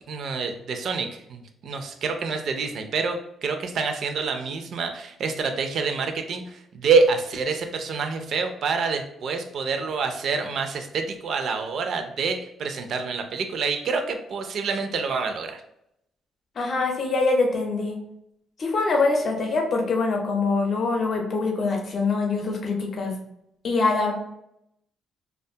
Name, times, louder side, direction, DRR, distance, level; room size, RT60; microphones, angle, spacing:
voice 1, 0.1-15.6, right 4 dB, 65° right, 6 dB, 0.4 m, -27 dB
voice 2, 16.6-18.0 18.6-23.1 23.6-24.1, left 3 dB, 50° left, 1 dB, 0.6 m, -24 dB
2.4 x 2.2 x 2.7 m, 0.78 s
cardioid pair, 90°, 0 cm